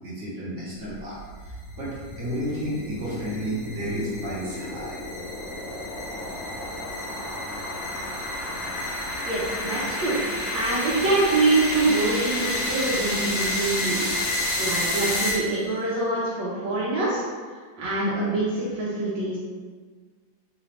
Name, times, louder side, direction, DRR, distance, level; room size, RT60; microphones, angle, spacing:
voice 1, 0.0-1.2 1.8-4.9, equal, 45° right, -8 dB, 1.2 m, -31 dB
sound 1, 1.0-15.8, left 1 dB, 50° left, 1.3 m, -30 dB
voice 2, 9.3-10.1 10.5-14.1 14.6-17.2 17.8-19.4, right 2 dB, 75° right, -8 dB, 1.4 m, -25 dB
4.0 x 2.6 x 3.2 m, 1.5 s
omnidirectional pair, 2.0 m